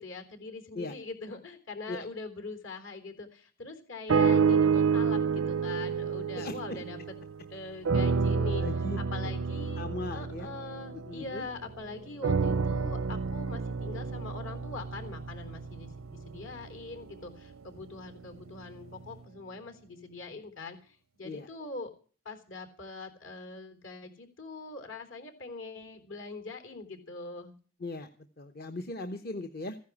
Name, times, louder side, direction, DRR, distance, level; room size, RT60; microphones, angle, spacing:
voice 1, 0.0-7.0 7.5-8.6 9.1-9.9 10.1-21.9 22.3-27.6, left 3 dB, 70° left, 7 dB, 3.7 m, -42 dB
sound 1, 4.1-7.4 7.8-11.6 12.2-16.4 17.1-17.2, right 5 dB, 85° right, 0.6 m, -29 dB
voice 2, 6.4-6.8 8.6-9.0 9.2-9.3 9.8-10.5 11.0-11.5 21.2-21.5 27.8-28.1 28.4-29.8, left 2 dB, 45° left, 7 dB, 0.9 m, -38 dB
15.5 x 10.5 x 7.2 m, 0.40 s
head